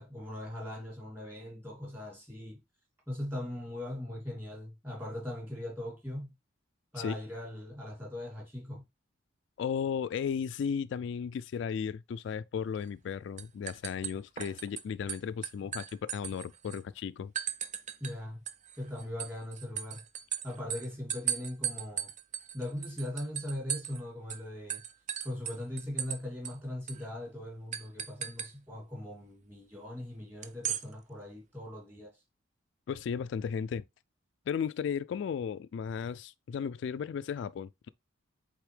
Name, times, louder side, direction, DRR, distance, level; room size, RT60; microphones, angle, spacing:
voice 1, 0.0-2.6 3.1-6.3 6.9-8.8 18.0-18.4 18.8-20.0 20.4-22.1 22.5-24.8 25.2-32.2, left 1 dB, 10° right, 2.7 m, -40 dB
voice 2, 9.6-17.3 32.9-33.8 34.5-37.9, left 7 dB, 65° left, 0.3 m, -35 dB
sound 1, 12.8-13.1 13.4-14.8 15.1-16.8 17.4-18.2 18.5-24.0 24.3-24.4 24.7-26.2 26.4-26.5 26.9-27.0 27.7-28.5 30.4-30.8, right 9 dB, 40° right, 0.5 m, -37 dB
8.2 x 3.5 x 3.3 m
head